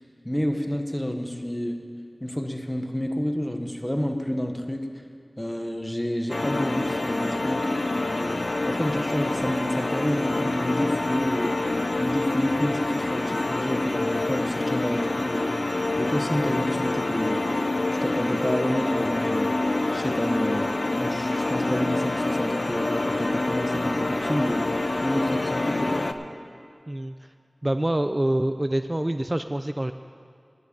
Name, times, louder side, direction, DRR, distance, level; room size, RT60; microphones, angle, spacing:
voice 1, 0.2-1.8 2.2-5.0 5.4-7.7 8.1-11.6 12.0-17.4 17.9-19.5 19.9-24.6 25.0-26.1, equal, 15° left, 5 dB, 1.0 m, -29 dB
sound 1, 6.3-26.1, left 2 dB, 75° left, 0.5 m, -27 dB
voice 2, 27.6-29.9, right 1 dB, 30° right, 9 dB, 0.3 m, -26 dB
10.5 x 7.6 x 8.4 m, 2.3 s
wide cardioid pair, 45°, 0 cm